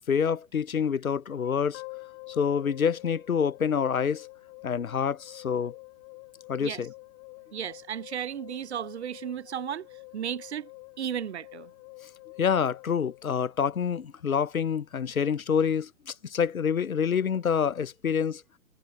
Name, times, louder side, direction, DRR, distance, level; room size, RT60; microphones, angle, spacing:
voice 1, 0.1-1.8 2.3-4.3 4.6-5.8 6.5-6.9 12.4-18.4, left 7 dB, 75° left, 0.8 m, -27 dB
sound 1, 1.7-14.0, left 40 dB or more, 25° left, 2.0 m, -48 dB
voice 2, 7.5-9.9 10.1-10.7 11.0-11.7, right 9 dB, 50° right, 0.7 m, -34 dB
figure-of-eight pair, 120°, 42 cm